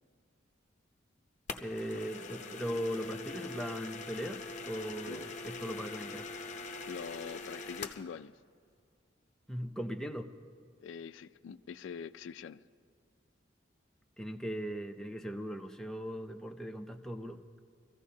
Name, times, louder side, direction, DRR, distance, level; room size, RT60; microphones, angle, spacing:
sound 1, 1.5-8.1, left 3 dB, 40° left, 0.7 m, -43 dB
voice 1, 1.6-6.3 9.5-10.3 14.2-17.4, equal, 5° left, 3 dB, 0.5 m, -39 dB
voice 2, 6.9-8.3 10.8-12.6, left 6 dB, 80° left, 13 dB, 0.3 m, -44 dB
23.5 x 14.5 x 2.8 m, 2.2 s
head